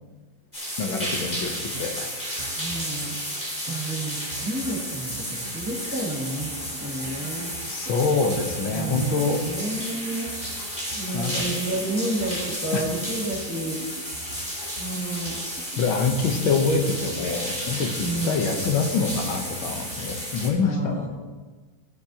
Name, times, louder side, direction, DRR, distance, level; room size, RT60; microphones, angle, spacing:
sound 1, 0.5-20.5, equal, 20° left, 2.8 m, -32 dB
voice 1, 0.8-2.1 7.6-9.4 11.1-11.6 12.7-12.8 15.8-21.1, left 4 dB, 70° left, 4 dB, 1.8 m, -25 dB
sound 2, 1.4-20.4, right 4 dB, 65° right, 0.6 m, -45 dB
voice 2, 2.5-3.2 3.7-6.5 6.8-7.5 8.7-10.3 11.0-13.8 14.8-15.3 18.0-18.4 20.6-21.1, right 2 dB, 5° right, -5 dB, 2.0 m, -30 dB
16.5 x 7.3 x 2.9 m, 1.4 s
omnidirectional pair, 2.3 m